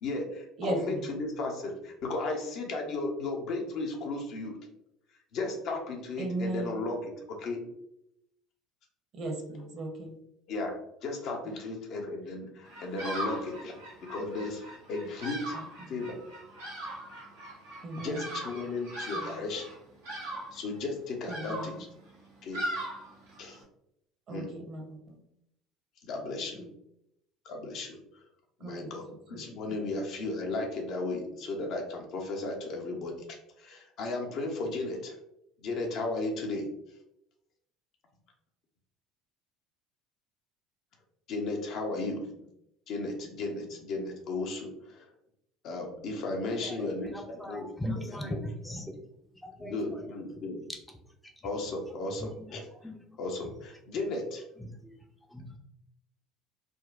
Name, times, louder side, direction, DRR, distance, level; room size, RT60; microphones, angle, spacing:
voice 1, 0.0-4.6 5.3-7.0 7.4-7.6 10.5-10.7 11.0-15.6 15.9-16.2 18.0-19.7 20.5-21.8 22.4-22.6 23.4-23.6 24.3-24.5 26.0-26.6 27.4-28.0 28.6-35.1 35.6-36.7 41.3-42.2 42.9-45.0 45.6-47.7 48.0-48.4 49.6-50.6 51.4-52.7 53.2-54.4, left 2 dB, 55° left, 1 dB, 0.8 m, -35 dB
voice 2, 0.6-1.1 6.2-6.8 9.1-10.2 11.4-11.5 15.5-16.0 17.8-18.4 19.1-19.5 21.3-21.8 24.3-25.2 26.5-26.7 28.6-29.4 29.7-29.8, right 2 dB, 50° right, 2 dB, 0.8 m, -38 dB
Bird vocalization bird call bird song, 12.7-23.6, right 1 dB, 85° right, 1.2 m, -40 dB
voice 3, 46.6-48.4 48.6-48.9 49.4-50.1 51.2-51.3 52.2-52.3 52.8-53.0 54.6-55.0 55.3-55.6, left 1 dB, 5° left, 2 dB, 0.5 m, -39 dB
3.7 x 2.2 x 2.4 m, 0.79 s
hypercardioid pair, 65°, 0 cm